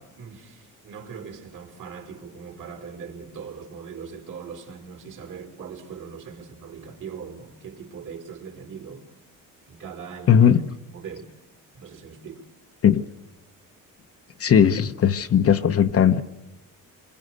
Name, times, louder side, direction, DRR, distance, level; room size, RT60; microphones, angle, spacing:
voice 1, 0.0-9.0 9.7-10.4 10.9-11.3 11.7-12.4, right 6 dB, 65° right, 4.6 m, -40 dB
voice 2, 10.3-10.7 12.8-13.0 14.4-16.2, left 8 dB, 45° left, 0.8 m, -18 dB
25.5 x 22.5 x 6.5 m
cardioid pair, 120°, 33 cm